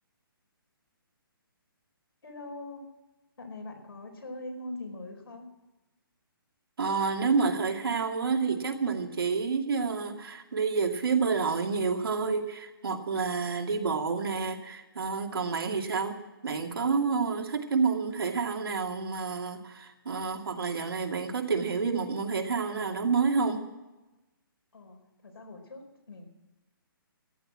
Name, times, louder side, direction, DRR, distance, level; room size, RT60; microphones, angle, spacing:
voice 1, 2.2-3.0 3.4-5.5 24.7-26.3, left 2 dB, 85° left, 3 dB, 4.8 m, -42 dB
voice 2, 6.8-23.6, right 5 dB, 75° right, 3 dB, 2.4 m, -29 dB
14.5 x 10.5 x 7.4 m, 1.1 s
hypercardioid pair, 175°, 12 cm